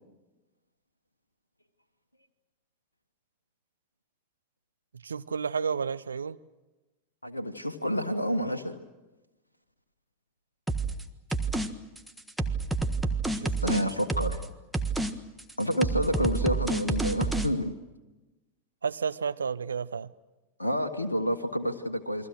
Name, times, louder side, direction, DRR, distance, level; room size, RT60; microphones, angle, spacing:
voice 1, 5.0-6.4 13.4-13.8 18.8-20.1, right 6 dB, 70° right, 13 dB, 0.7 m, -31 dB
voice 2, 7.2-8.8 13.6-14.4 15.6-17.7 20.6-22.3, equal, 85° left, 7 dB, 1.4 m, -29 dB
sound 1, 10.7-11.0 11.3-11.7 12.0-14.5 14.7-15.1 15.4-17.5, right 3 dB, 5° right, 1.5 m, -28 dB
29.0 x 23.0 x 6.4 m, 1.1 s
figure-of-eight pair, 90°, 0 cm